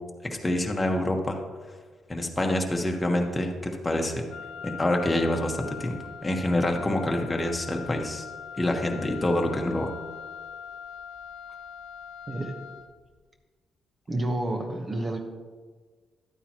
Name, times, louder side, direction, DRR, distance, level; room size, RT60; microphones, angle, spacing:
voice 1, 0.4-1.4 2.1-4.2 4.6-8.2 8.6-9.9, left 1 dB, 20° left, 2 dB, 1.3 m, -26 dB
Wind instrument woodwind instrument, 4.3-13.0, left 7 dB, 70° left, 0.5 m, -41 dB
voice 2, 12.3-12.6 14.1-15.2, right 1 dB, 30° right, 3 dB, 1.1 m, -29 dB
12.0 x 9.0 x 3.0 m, 1.5 s
cardioid pair, 90°, 0 cm